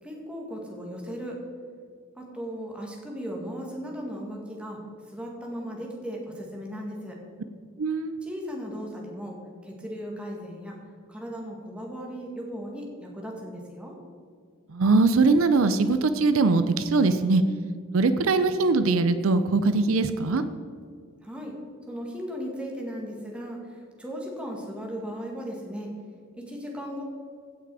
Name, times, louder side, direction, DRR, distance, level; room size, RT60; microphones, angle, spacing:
voice 1, 0.0-1.4 2.2-4.8 5.1-7.2 8.2-9.4 9.6-10.8 11.1-14.0 21.2-21.6 21.9-25.9 26.3-27.0, equal, 5° right, -1 dB, 1.8 m, -36 dB
voice 2, 7.8-8.1 14.7-17.4 17.9-20.4, right 3 dB, 70° right, 11 dB, 0.5 m, -21 dB
16.0 x 5.9 x 4.8 m, 2.1 s
head